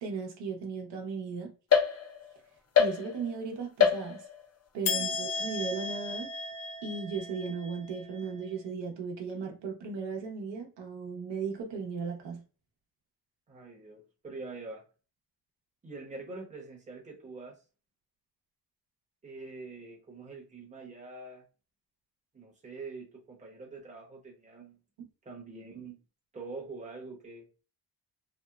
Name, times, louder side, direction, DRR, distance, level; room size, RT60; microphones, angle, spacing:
voice 1, 0.0-1.5 2.8-4.2 4.7-6.3 6.8-12.4 25.0-25.1, right 5 dB, 85° right, 0.8 m, -36 dB
sound 1, 1.7-2.4 2.7-3.4 3.8-4.5 4.8-8.3, left 6 dB, 40° left, 0.5 m, -29 dB
voice 2, 13.5-14.8 15.8-17.6 19.2-21.4 22.3-24.8 25.2-26.0 26.3-27.5, right 3 dB, 15° right, 0.7 m, -45 dB
2.9 x 2.0 x 2.2 m
cardioid pair, 130°, 42 cm